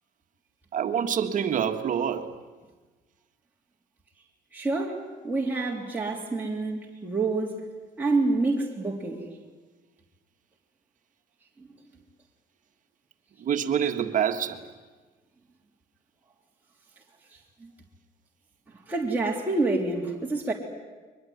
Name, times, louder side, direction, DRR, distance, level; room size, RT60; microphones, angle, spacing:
voice 1, 0.7-2.3 6.0-6.1 13.4-14.7, right 8 dB, 50° right, 7 dB, 1.6 m, -26 dB
voice 2, 4.5-7.7 8.0-9.2 17.6-17.7 18.9-20.5, right 3 dB, 10° right, -3 dB, 3.3 m, -27 dB
22.5 x 21.5 x 9.5 m, 1.3 s
cardioid pair, 110°, 17 cm